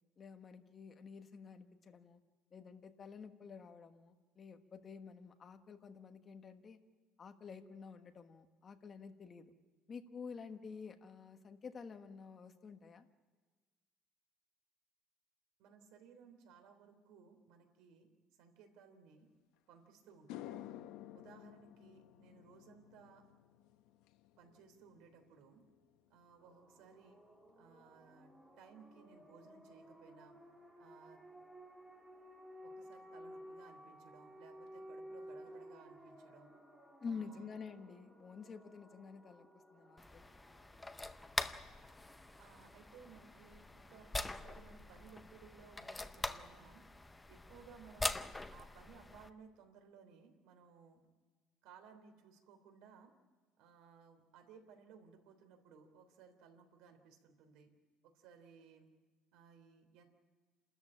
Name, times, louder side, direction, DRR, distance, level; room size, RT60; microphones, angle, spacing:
voice 1, 0.2-2.2 2.5-6.8 7.2-9.5 9.9-13.0 37.0-40.3, left 5 dB, 30° left, 6 dB, 1.3 m, -50 dB
voice 2, 15.6-18.1 18.4-19.3 19.7-20.6 21.1-23.2 24.4-25.6 26.1-27.2 27.6-30.4 30.8-31.2 32.6-36.5 37.0-37.5 42.4-46.8 47.3-48.2 48.5-51.1 51.6-53.1 53.6-57.7 58.0-58.9 59.3-60.0, right 6 dB, 80° right, 6 dB, 3.3 m, -60 dB
sound 1, 19.6-19.7 20.1-28.6 28.9-29.3 32.9-33.0 34.7-34.8 35.1-35.2 35.5-36.0, left 12 dB, 85° left, 0.8 m, -55 dB
sound 2, 26.4-45.8, equal, 10° right, 2.8 m, -57 dB
sound 3, 40.0-49.3, left 2 dB, 10° left, 0.6 m, -44 dB
29.0 x 13.5 x 8.7 m, 1.4 s
cardioid pair, 165°, 0 cm